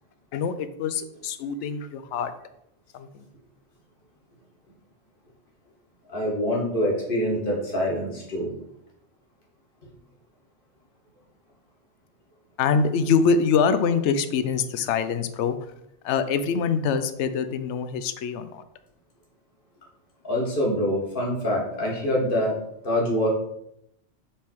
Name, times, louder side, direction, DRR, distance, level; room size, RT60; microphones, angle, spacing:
voice 1, 0.3-2.3 2.9-3.2 12.6-15.7 16.0-18.6, left 5 dB, 75° left, 10 dB, 0.9 m, -24 dB
voice 2, 6.1-8.5 20.2-22.5 22.8-23.3, left 1 dB, 50° left, -2 dB, 1.9 m, -25 dB
7.2 x 3.6 x 4.5 m, 0.77 s
omnidirectional pair, 1.2 m